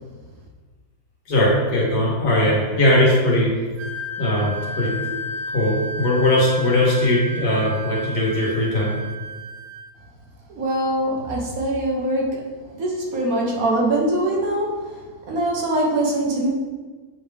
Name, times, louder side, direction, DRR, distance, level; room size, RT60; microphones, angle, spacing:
voice 1, 1.3-3.5 4.2-5.2 5.5-8.9, left 1 dB, 80° left, -4 dB, 2.1 m, -19 dB
Wind instrument woodwind instrument, 3.8-9.9, equal, 85° right, 1.2 m, -32 dB
voice 2, 10.5-12.4 12.7-16.5, right 1 dB, 60° right, -2 dB, 1.4 m, -23 dB
8.0 x 3.5 x 3.4 m, 1.4 s
omnidirectional pair, 1.7 m